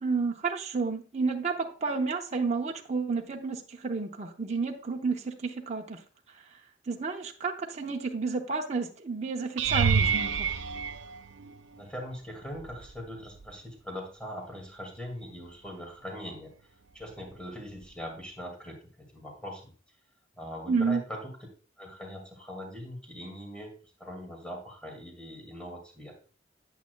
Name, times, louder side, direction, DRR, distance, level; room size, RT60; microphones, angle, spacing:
voice 1, 0.0-6.0 6.9-10.5 20.7-21.0, right 4 dB, 35° right, 1 dB, 0.8 m, -31 dB
sound 1, 9.6-11.9 12.5-13.0 13.4-13.5 17.9-18.0, right 6 dB, 70° right, 0.5 m, -28 dB
voice 2, 11.8-16.5 16.9-19.7 20.4-21.4 21.8-23.7 24.0-26.1, equal, 5° left, 1 dB, 2.1 m, -41 dB
8.8 x 8.4 x 2.3 m, 0.39 s
head